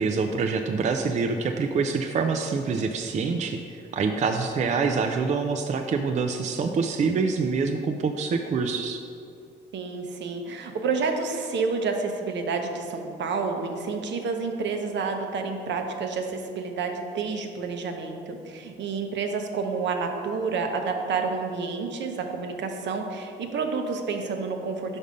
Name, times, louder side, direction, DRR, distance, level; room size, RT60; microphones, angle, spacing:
voice 1, 0.0-9.0, right 4 dB, 35° right, 5 dB, 0.4 m, -26 dB
voice 2, 9.7-25.0, right 4 dB, 65° right, 4 dB, 0.8 m, -29 dB
5.3 x 5.3 x 4.9 m, 2.5 s
cardioid pair, 90°, 20 cm